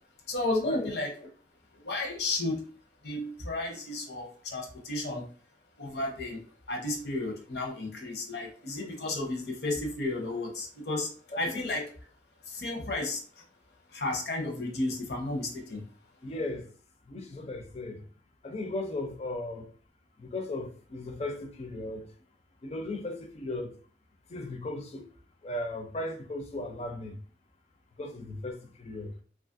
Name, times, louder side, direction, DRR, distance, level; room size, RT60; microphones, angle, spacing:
voice 1, 0.3-1.2 1.7-2.6 3.0-5.2 5.8-11.8 12.4-13.4 13.9-15.8, left 2 dB, 70° left, 0.7 m, -33 dB
voice 2, 11.3-11.6 16.2-16.7 17.1-18.0 18.4-19.7 20.2-22.1 22.6-23.8 24.3-25.1 25.4-27.2 28.0-29.1, left 2 dB, 35° left, 0.4 m, -36 dB
2.9 x 2.4 x 2.5 m
head